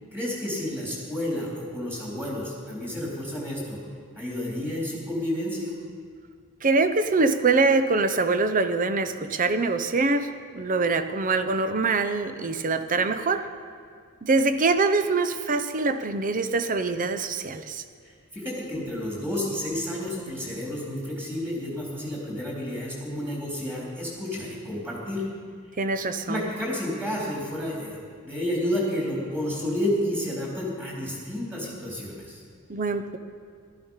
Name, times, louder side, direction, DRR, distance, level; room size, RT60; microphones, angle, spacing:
voice 1, 0.1-3.8 4.2-5.7 18.3-25.2 26.3-32.4, left 1 dB, 10° right, -4 dB, 3.7 m, -30 dB
voice 2, 6.6-13.5 14.2-17.8 25.8-26.5 32.7-33.2, right 3 dB, 40° right, 10 dB, 0.7 m, -24 dB
14.5 x 12.5 x 5.6 m, 2.1 s
head